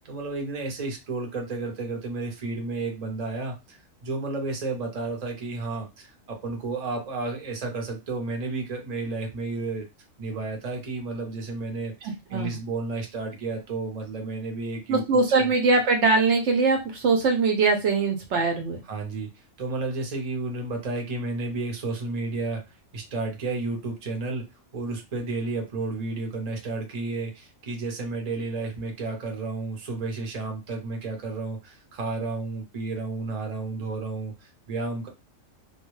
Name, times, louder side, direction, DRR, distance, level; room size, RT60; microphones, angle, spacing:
voice 1, 0.0-9.9 10.2-15.5 18.9-22.6 22.9-24.4 24.7-35.1, right 3 dB, 35° right, 2 dB, 0.7 m, -32 dB
voice 2, 14.9-18.8, right 3 dB, 65° right, 3 dB, 0.9 m, -22 dB
2.3 x 2.2 x 3.1 m, 0.24 s
omnidirectional pair, 1.3 m